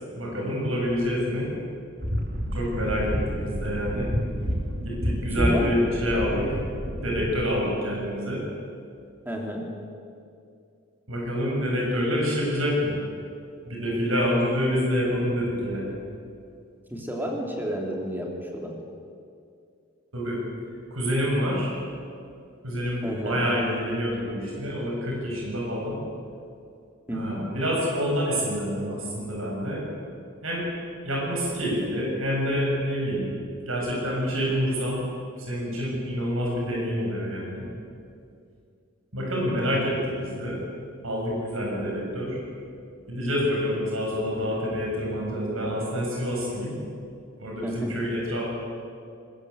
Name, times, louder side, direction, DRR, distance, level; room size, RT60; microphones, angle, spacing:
voice 1, 0.1-1.5 2.5-4.1 4.8-6.6 7.0-8.4 11.1-13.0 13.6-16.0 20.1-20.4 20.9-21.7 22.6-26.0 27.1-29.8 30.4-30.7 31.0-33.3 33.6-35.1 35.4-37.7 39.1-40.6 41.0-42.4 43.1-46.8 47.4-48.4, equal, 80° right, -3 dB, 7.4 m, -27 dB
sound 1, 2.0-7.4, equal, 50° right, 3.0 m, -29 dB
voice 2, 5.4-5.7 9.2-9.7 16.9-18.8 23.0-23.4 27.1-27.5 47.6-47.9, equal, 10° right, 0 dB, 3.3 m, -31 dB
21.0 x 21.0 x 8.2 m, 2.4 s
head